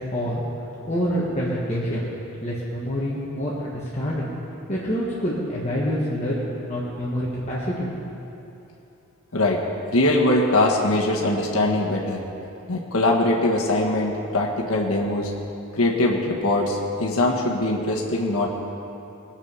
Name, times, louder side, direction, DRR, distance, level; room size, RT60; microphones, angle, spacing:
voice 1, 0.1-0.4 0.8-2.0 2.4-4.3 4.7-7.9, equal, 30° left, -6 dB, 1.5 m, -26 dB
voice 2, 9.9-12.2 12.7-15.3 15.7-18.5, left 1 dB, 70° left, -1 dB, 1.4 m, -22 dB
21.0 x 7.4 x 5.6 m, 3.0 s
head